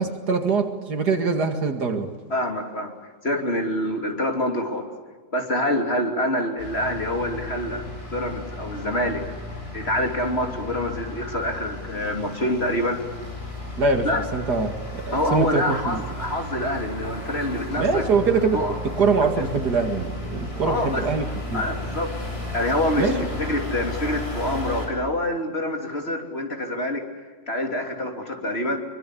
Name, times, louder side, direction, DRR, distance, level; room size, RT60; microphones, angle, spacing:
voice 1, 0.0-2.1 13.8-16.0 17.8-21.6 23.0-23.2, right 4 dB, 65° right, 6 dB, 2.7 m, -23 dB
voice 2, 2.3-4.9 5.3-9.3 9.7-13.0 14.0-14.2 15.1-18.0 18.5-18.8 19.4-19.5 20.6-21.1 21.5-22.2 22.5-27.0 27.5-28.8, left 1 dB, 35° left, 3 dB, 3.3 m, -26 dB
sound 1, 6.6-24.9, left 1 dB, 60° left, 7.0 m, -34 dB
25.0 x 24.5 x 8.5 m, 1.4 s
omnidirectional pair, 1.8 m